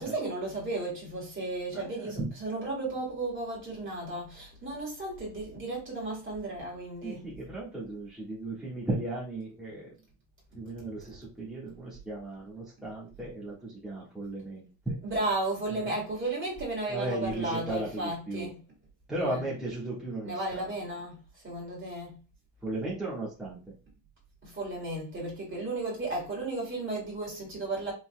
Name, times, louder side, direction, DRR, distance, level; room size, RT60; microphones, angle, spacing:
voice 1, 0.0-7.3 15.0-18.6 19.2-19.4 20.2-22.2 24.4-27.9, right 2 dB, 25° right, 2.4 m, -34 dB
voice 2, 1.7-2.3 7.0-9.9 10.5-15.0 15.7-15.9 16.9-18.5 19.1-20.8 22.6-23.6, right 2 dB, ahead, 1.5 m, -36 dB
5.5 x 4.0 x 2.2 m
cardioid pair, 175°, 49 cm